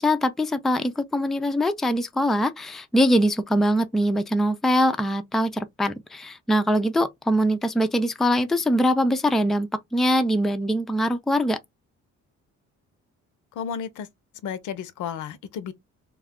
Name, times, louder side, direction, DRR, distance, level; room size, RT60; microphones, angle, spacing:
voice 1, 0.0-11.6, equal, ahead, 0.3 m, -23 dB
voice 2, 13.5-14.1 14.4-15.7, left 8 dB, 80° left, 0.6 m, -32 dB
2.3 x 2.3 x 3.4 m
cardioid pair, 90°, 30 cm